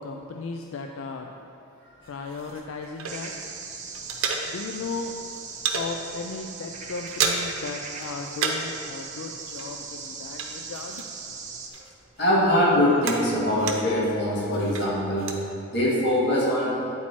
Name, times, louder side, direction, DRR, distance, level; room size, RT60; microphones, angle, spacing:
voice 1, 0.0-1.3 2.1-3.3 4.5-5.1 5.7-11.0, left 4 dB, 80° left, 3 dB, 0.4 m, -36 dB
sound 1, 2.0-3.5 3.8-4.9 5.2-5.9 6.3-6.5 6.8-7.7 7.9-8.8 9.0-11.4 11.7-14.1 14.5-15.4, right 5 dB, 90° right, 0.7 m, -32 dB
sound 2, 3.1-11.7, right 5 dB, 35° right, 0.6 m, -39 dB
voice 2, 12.2-15.3 15.7-16.8, left 1 dB, 55° left, -5 dB, 1.6 m, -22 dB
8.6 x 4.4 x 4.3 m, 2.7 s
head